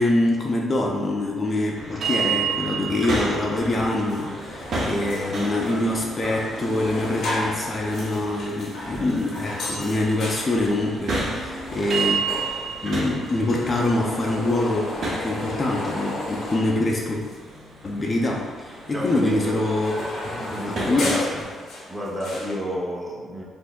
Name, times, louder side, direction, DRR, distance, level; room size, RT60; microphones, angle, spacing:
voice 1, 0.0-12.2 12.8-17.2 17.8-19.9 20.2-21.2, left 2 dB, 35° left, -2 dB, 0.4 m, -25 dB
sound 1, 1.7-21.4, right 4 dB, 60° right, 0.8 m, -32 dB
sound 2, 3.7-3.8 4.1-17.6 17.9-22.6, left 1 dB, 80° left, 1.0 m, -35 dB
voice 2, 18.9-19.5 20.3-21.2 21.9-23.4, equal, 15° right, -4 dB, 0.8 m, -30 dB
4.3 x 2.6 x 2.2 m, 1.5 s
cardioid pair, 90°, 0 cm